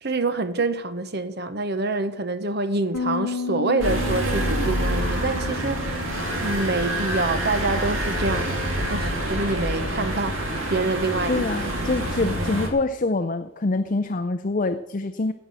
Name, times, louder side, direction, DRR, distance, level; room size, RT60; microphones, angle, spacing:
voice 1, 0.0-10.4 10.7-11.4, right 3 dB, 50° right, 0.9 m, -26 dB
Bass guitar, 2.9-9.2, left 4 dB, 85° left, 0.8 m, -34 dB
sound 1, 3.8-12.7, right 1 dB, 70° right, 2.6 m, -27 dB
voice 2, 11.3-15.3, left 3 dB, 35° left, 0.5 m, -25 dB
16.0 x 7.4 x 6.3 m
head